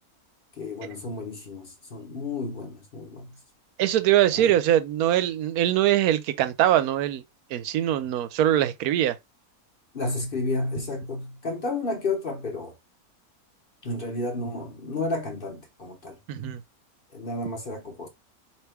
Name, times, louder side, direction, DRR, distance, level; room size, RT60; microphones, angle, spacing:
voice 1, 0.6-3.4 4.3-4.6 9.9-12.8 13.8-16.2 17.1-18.1, left 2 dB, 40° left, 1.0 m, -32 dB
voice 2, 3.8-7.2 7.5-9.2 16.3-16.6, right 12 dB, 80° right, 1.0 m, -22 dB
4.5 x 2.8 x 3.3 m
omnidirectional pair, 1.6 m